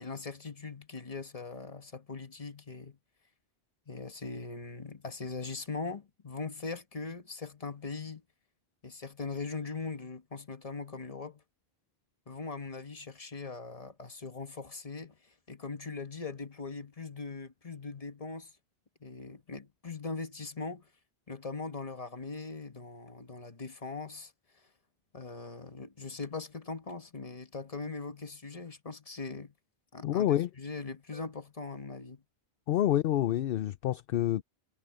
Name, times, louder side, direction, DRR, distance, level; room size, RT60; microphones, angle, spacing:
voice 1, 0.0-3.0 3.9-8.2 8.8-11.4 12.3-15.2 15.5-18.5 19.0-20.9 21.3-24.3 25.1-29.5 29.9-32.2, left 4 dB, 35° left, 1.4 m, -40 dB
voice 2, 30.0-30.5 32.7-34.4, left 12 dB, 65° left, 0.7 m, -27 dB
omnidirectional pair, 1.1 m